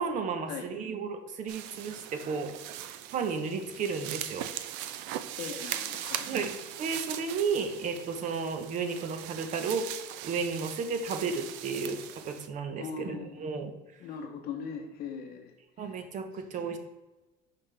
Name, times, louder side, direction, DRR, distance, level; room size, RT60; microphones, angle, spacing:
voice 1, 0.0-2.6 3.1-4.5 6.3-9.9 10.2-13.7 15.8-16.8, right 5 dB, 40° right, 8 dB, 0.8 m, -33 dB
sound 1, 1.5-12.5, right 11 dB, 75° right, 0.5 m, -40 dB
voice 2, 5.3-6.4 12.8-13.3 14.0-16.0, left 6 dB, 55° left, 3 dB, 0.8 m, -40 dB
5.7 x 5.6 x 3.3 m, 1.1 s
cardioid pair, 140°, 19 cm